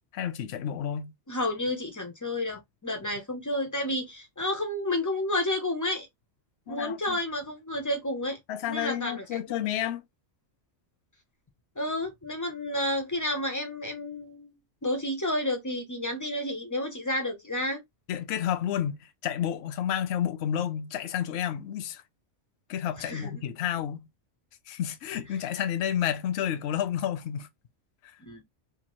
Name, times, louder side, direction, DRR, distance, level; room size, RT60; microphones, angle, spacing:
voice 1, 0.1-1.1 6.7-7.2 8.5-10.0 18.1-22.0 22.7-24.1 24.7-27.5, left 10 dB, 65° left, 0.7 m, -30 dB
voice 2, 1.3-6.1 6.7-8.4 8.7-9.4 11.8-14.6 14.8-17.8 23.0-23.3 28.2-28.4, left 1 dB, 30° left, 0.3 m, -31 dB
2.8 x 2.3 x 2.9 m
omnidirectional pair, 1.3 m